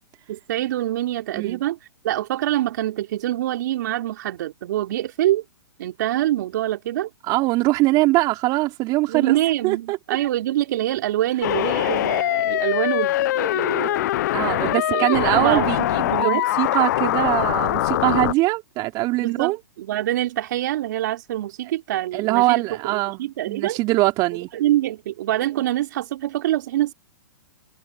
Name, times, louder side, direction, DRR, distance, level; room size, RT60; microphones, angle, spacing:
voice 1, 0.3-1.8 2.0-5.4 5.8-7.1 9.1-14.1 14.6-16.4 19.2-23.8 24.5-26.9, right 14 dB, 55° right, 3.6 m, -25 dB
voice 2, 7.3-9.4 9.6-10.0 13.7-13.9 14.3-19.6 22.1-24.5, right 20 dB, 35° right, 3.4 m, -22 dB
sound 1, 11.4-18.3, left 15 dB, 55° left, 0.8 m, -22 dB
hypercardioid pair, 125°, 12 cm